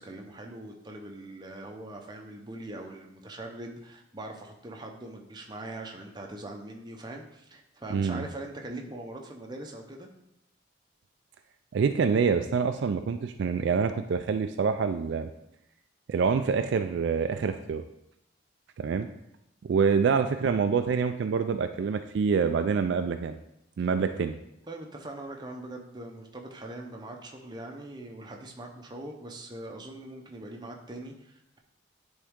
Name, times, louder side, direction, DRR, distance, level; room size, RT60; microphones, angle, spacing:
voice 1, 0.0-10.1 19.9-20.2 24.7-31.6, right 1 dB, 20° right, 2 dB, 0.7 m, -42 dB
voice 2, 7.9-8.2 11.7-15.3 16.1-17.8 18.8-19.1 19.7-23.4 23.8-24.4, right 5 dB, 60° right, 8 dB, 0.3 m, -26 dB
10.0 x 3.6 x 3.6 m, 0.83 s
head